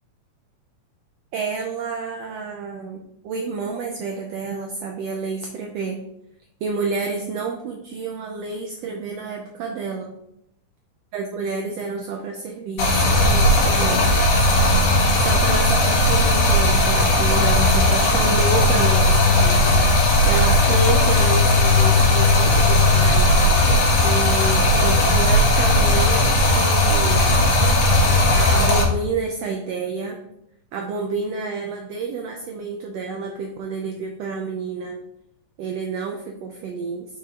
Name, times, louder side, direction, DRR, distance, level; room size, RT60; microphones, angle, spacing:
voice 1, 1.3-6.0 6.6-10.1 11.1-14.5 15.2-23.3 23.9-27.3 28.3-30.2 30.7-35.0 35.6-37.1, right 4 dB, 75° right, 2 dB, 1.5 m, -29 dB
Stream, 12.8-28.8, left 2 dB, 60° left, 2.5 m, -17 dB
6.6 x 5.5 x 3.7 m, 0.79 s
omnidirectional pair, 3.5 m